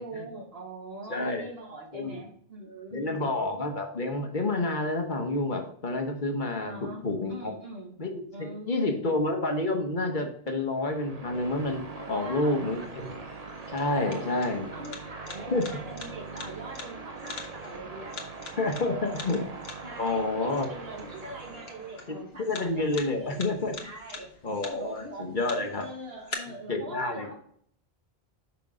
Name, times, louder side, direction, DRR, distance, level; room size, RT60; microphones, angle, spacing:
voice 1, 0.0-3.5 6.5-8.0 8.3-9.0 12.1-12.7 14.0-14.4 14.7-18.2 18.8-19.3 19.8-23.5 23.8-24.3 24.7-25.3 25.7-27.3, right 2 dB, 75° right, -1 dB, 2.1 m, -42 dB
voice 2, 1.1-1.5 1.9-2.2 2.9-6.7 7.0-7.5 8.0-13.2 13.7-14.7 15.5-15.6 18.6-19.4 20.0-20.7 22.1-23.7 24.4-25.8 26.7-27.3, left 2 dB, 50° left, 4 dB, 1.3 m, -29 dB
sound 1, 10.7-22.3, right 4 dB, 40° right, 0.9 m, -42 dB
sound 2, 11.3-26.3, left 4 dB, 80° left, 1.4 m, -46 dB
6.1 x 5.8 x 3.7 m, 0.63 s
omnidirectional pair, 1.0 m